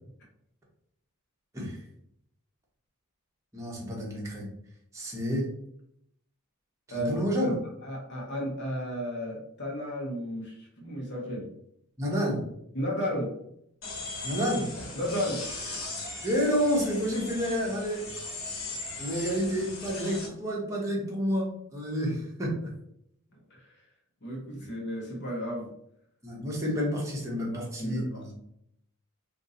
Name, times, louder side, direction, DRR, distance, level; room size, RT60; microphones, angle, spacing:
voice 1, 3.5-4.5 4.9-5.5 6.9-7.6 12.0-12.4 14.2-14.7 16.2-18.1 19.0-22.7 26.2-28.3, equal, 15° right, -3 dB, 1.0 m, -29 dB
voice 2, 7.8-11.5 12.7-13.4 14.9-15.5 23.5-23.8 24.2-25.7 27.5-28.3, equal, 55° left, -2 dB, 1.1 m, -33 dB
sound 1, 13.8-20.3, left 3 dB, 75° left, 1.3 m, -38 dB
2.7 x 2.6 x 3.8 m, 0.74 s
head